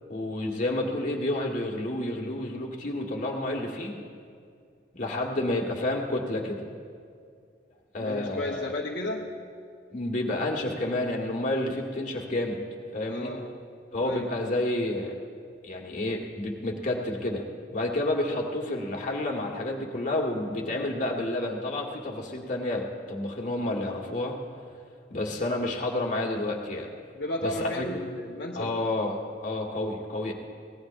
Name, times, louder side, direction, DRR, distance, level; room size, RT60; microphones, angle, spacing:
voice 1, 0.1-4.0 4.9-6.6 7.9-8.7 9.9-12.6 12.9-13.3 13.9-15.1 15.6-17.4 17.7-24.4 25.1-26.9 27.4-27.8 28.5-30.3, left 1 dB, 45° left, 0 dB, 1.7 m, -30 dB
voice 2, 3.5-3.9 8.0-9.3 13.1-13.5 14.0-14.3 27.1-28.8, left 1 dB, 65° left, -2 dB, 1.1 m, -34 dB
23.5 x 18.0 x 2.6 m, 2.3 s
head